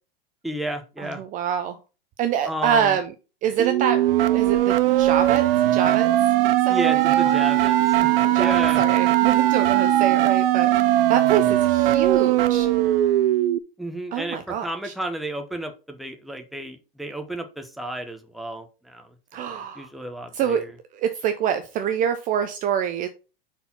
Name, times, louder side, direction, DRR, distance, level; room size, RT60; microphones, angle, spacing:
voice 1, 0.4-1.2 2.5-3.0 6.7-8.8 13.8-20.7, right 1 dB, ahead, 5 dB, 0.9 m, -32 dB
voice 2, 1.0-1.8 2.2-3.1 3.4-4.0 4.3-6.1 6.6-7.4 8.3-12.7 14.1-14.9 19.3-19.9 20.3-20.6 20.9-23.1, right 8 dB, 25° right, 9 dB, 0.6 m, -25 dB
sound 1, 3.6-13.6, right 13 dB, 70° right, 0.7 m, -19 dB
5.4 x 4.5 x 5.8 m, 0.32 s
supercardioid pair, 135°, 29 cm